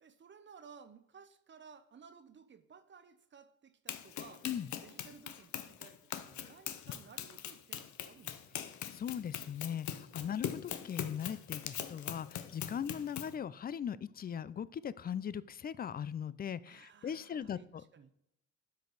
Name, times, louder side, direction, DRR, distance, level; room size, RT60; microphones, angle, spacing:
voice 1, 0.0-4.5 4.8-8.7 10.2-10.3 12.6-12.8 16.7-18.1, right 6 dB, 40° right, 11 dB, 0.8 m, -57 dB
Run, 3.9-13.4, left 10 dB, 75° left, 0.8 m, -42 dB
voice 2, 8.9-17.8, left 8 dB, 30° left, 19 dB, 0.4 m, -39 dB
12.0 x 5.2 x 4.0 m, 0.80 s
cardioid pair, 90°, 30 cm